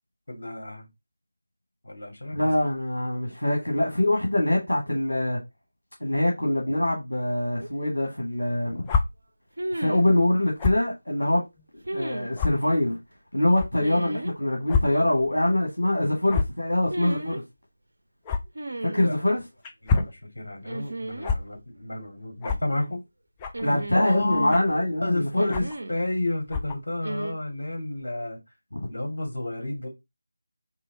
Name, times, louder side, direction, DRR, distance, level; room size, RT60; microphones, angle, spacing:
voice 1, 0.3-0.9 1.8-2.5 19.0-19.2 19.8-23.0 23.6-24.5 25.0-28.4 28.9-29.9, left 2 dB, 55° left, 2.2 m, -31 dB
voice 2, 2.3-5.4 6.0-8.9 9.7-11.4 11.9-13.0 13.3-17.4 18.8-19.4 23.6-25.5 28.7-28.9, left 1 dB, 70° left, 1.6 m, -24 dB
sound 1, 7.6-7.7 9.6-10.1 11.8-12.3 13.8-14.3 16.8-17.4 18.5-19.2 20.6-21.3 21.6-21.7 23.5-24.5 25.4-26.0 27.0-27.3, right 2 dB, 55° right, 0.7 m, -34 dB
sound 2, 8.8-9.0 10.6-10.8 11.6-11.7 12.4-12.5 13.5-13.7 14.7-14.8 15.2-15.3 16.3-16.6 18.3-18.4 19.6-20.1 21.2-21.4 22.4-22.6 23.4-23.7 24.5-24.8 25.5-25.8 26.5-26.8, left 5 dB, 10° left, 0.4 m, -25 dB
3.9 x 3.1 x 4.0 m
figure-of-eight pair, 165°, 0 cm